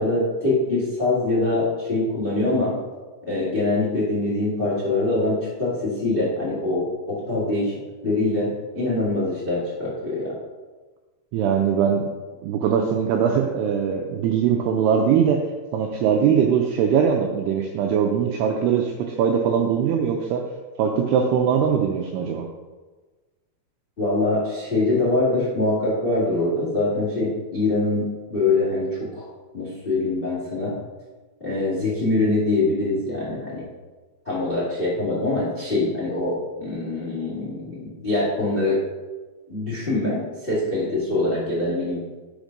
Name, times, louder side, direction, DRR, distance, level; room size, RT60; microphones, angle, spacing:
voice 1, 0.0-2.7 3.2-10.3 21.6-21.7 24.0-29.3 29.5-30.8 31.4-33.6 34.2-38.8 39.5-42.0, left 2 dB, 40° left, -7 dB, 0.8 m, -24 dB
voice 2, 11.3-12.1 12.4-15.4 15.7-20.4 20.8-22.4, right 7 dB, 85° right, 2 dB, 2.3 m, -21 dB
6.2 x 5.2 x 5.1 m, 1.3 s
omnidirectional pair, 5.2 m